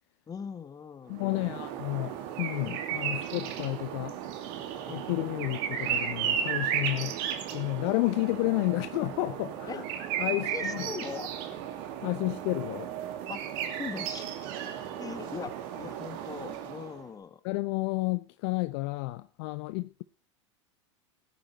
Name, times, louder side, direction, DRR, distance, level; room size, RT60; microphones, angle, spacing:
voice 1, 0.3-1.7 9.7-9.8 10.3-11.3 13.3-14.3 15.0-17.4, left 6 dB, 25° left, 1.7 m, -41 dB
voice 2, 1.1-4.2 4.8-7.2 7.5-9.8 10.2-10.8 12.0-12.9 17.4-20.0, left 21 dB, 55° left, 0.6 m, -31 dB
sound 1, 1.1-17.0, right 9 dB, 55° right, 2.6 m, -35 dB
17.0 x 9.4 x 4.5 m
hypercardioid pair, 90°, 16 cm